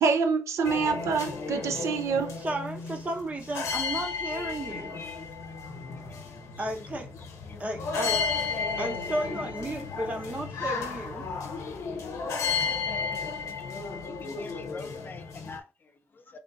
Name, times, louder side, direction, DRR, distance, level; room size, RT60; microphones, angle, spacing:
voice 1, 0.0-2.4, right 5 dB, 80° right, 0.6 m, -26 dB
sound 1, 0.6-15.6, left 5 dB, 90° left, 0.6 m, -33 dB
voice 2, 2.4-5.0 6.6-7.1 7.6-11.3, right 1 dB, 30° right, 1.0 m, -34 dB
voice 3, 4.9-5.5 5.9-6.2 6.6-6.7 7.5-7.7 7.9-8.0 8.7-8.8 13.6-13.7 14.0-16.4, left 4 dB, 40° left, 0.7 m, -46 dB
3.0 x 2.5 x 3.9 m
cardioid pair, 105°, 5 cm